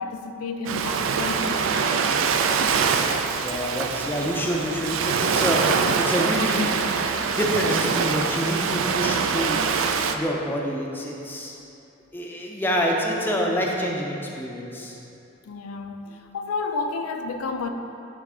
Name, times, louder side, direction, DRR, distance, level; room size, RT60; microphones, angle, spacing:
voice 1, 0.0-1.7 2.4-2.8 15.5-17.7, left 3 dB, 90° left, 5 dB, 0.4 m, -31 dB
Ocean, 0.6-10.1, right 5 dB, 65° right, 0.3 m, -24 dB
voice 2, 3.4-6.7 7.3-9.6 10.1-11.5 12.1-15.0, equal, 10° left, -1 dB, 0.5 m, -27 dB
9.3 x 3.2 x 3.7 m, 2.8 s
head